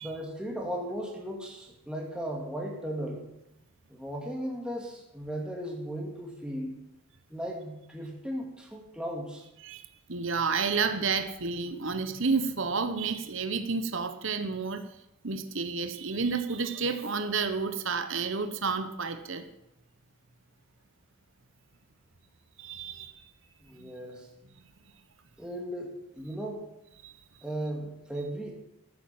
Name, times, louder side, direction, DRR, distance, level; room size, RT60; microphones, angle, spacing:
voice 1, 0.0-3.2 3.9-6.8 7.3-9.4 23.6-24.3 25.4-26.7 27.4-28.5, equal, 5° right, -1 dB, 2.2 m, -36 dB
voice 2, 9.6-14.8 15.2-19.4 22.6-23.2 23.8-23.9 27.0-27.1, right 4 dB, 60° right, 9 dB, 1.1 m, -30 dB
14.5 x 8.7 x 7.6 m, 0.83 s
head